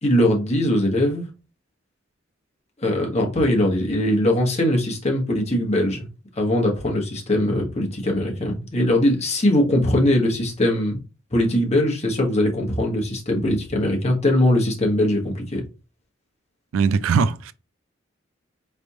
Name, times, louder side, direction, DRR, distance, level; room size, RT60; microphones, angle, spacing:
voice 1, 0.0-1.3 2.8-6.1 6.3-11.0 11.3-15.6, left 1 dB, 35° left, 1.2 m, -21 dB
voice 2, 16.7-17.5, right 5 dB, 80° right, 0.4 m, -20 dB
4.2 x 3.4 x 2.7 m
head